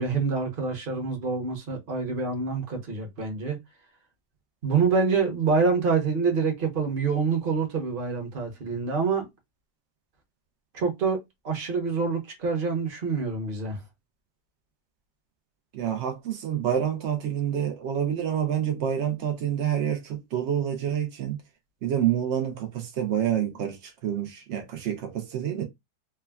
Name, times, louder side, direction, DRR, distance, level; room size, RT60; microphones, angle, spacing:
voice 1, 0.0-3.6 4.6-9.3 10.7-13.8, right 5 dB, 45° right, 0.8 m, -26 dB
voice 2, 15.7-21.4 21.8-25.6, right 9 dB, 90° right, 0.6 m, -28 dB
3.4 x 2.1 x 2.2 m
omnidirectional pair, 1.8 m